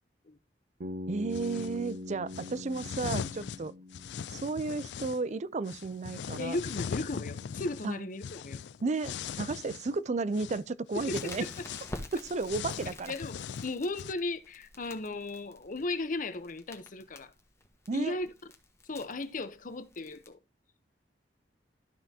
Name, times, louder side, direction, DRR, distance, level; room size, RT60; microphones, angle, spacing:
Bass guitar, 0.8-4.8, left 2 dB, 70° right, 1.1 m, -42 dB
voice 1, 1.1-3.7 4.3-6.6 7.8-8.1 8.8-11.5 12.1-13.1 17.9-18.2, right 3 dB, 40° right, 0.5 m, -33 dB
sound 1, 1.3-1.8 2.3-5.2 5.7-10.0 10.3-10.6 10.9-14.1, left 7 dB, 70° left, 0.4 m, -40 dB
voice 2, 6.4-8.6 10.9-11.5 13.1-17.3 17.9-18.3 18.9-20.4, left 2 dB, 50° left, 0.8 m, -36 dB
Crackle, 11.1-20.3, left 1 dB, 15° left, 1.4 m, -49 dB
13.0 x 5.8 x 2.8 m
head